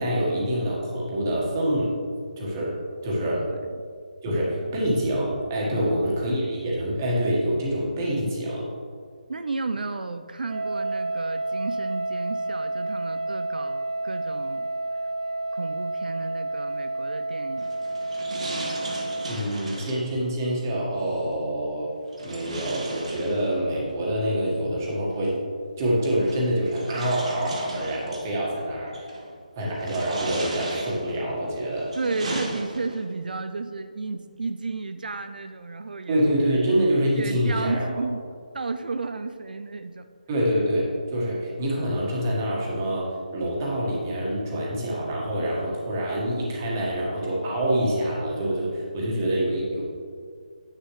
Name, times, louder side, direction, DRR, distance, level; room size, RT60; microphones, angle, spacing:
voice 1, 0.0-1.9 2.4-2.8 3.0-3.5 4.2-8.7 19.2-21.9 22.2-25.3 25.8-29.1 29.5-31.9 36.1-37.9 40.3-49.8, equal, 20° right, -4 dB, 1.5 m, -26 dB
voice 2, 3.3-3.8 4.2-4.7 5.7-6.1 9.3-14.7 15.5-17.7 32.0-36.3 37.2-38.2 38.5-40.1, right 3 dB, 85° right, 9 dB, 0.5 m, -33 dB
Wind instrument woodwind instrument, 10.5-19.4, right 2 dB, 65° right, 1.5 m, -30 dB
sound 1, 17.6-20.1 22.1-23.8 25.1-25.2 26.2-28.3 28.9-29.3 29.7-31.2 31.7-33.1, right 2 dB, 50° right, 1.3 m, -36 dB
9.8 x 7.5 x 3.2 m, 2.2 s
hypercardioid pair, 175°, 5 cm